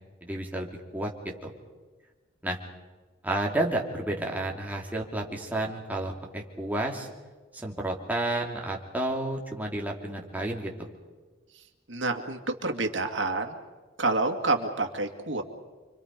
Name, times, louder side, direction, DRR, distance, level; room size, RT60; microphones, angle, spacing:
voice 1, 0.2-1.5 2.4-2.6 3.2-7.1 7.5-10.9, right 1 dB, 10° right, -1 dB, 2.7 m, -31 dB
voice 2, 11.9-13.6 14.0-15.4, right 3 dB, 85° right, 4 dB, 2.3 m, -28 dB
29.5 x 24.0 x 5.3 m, 1.3 s
head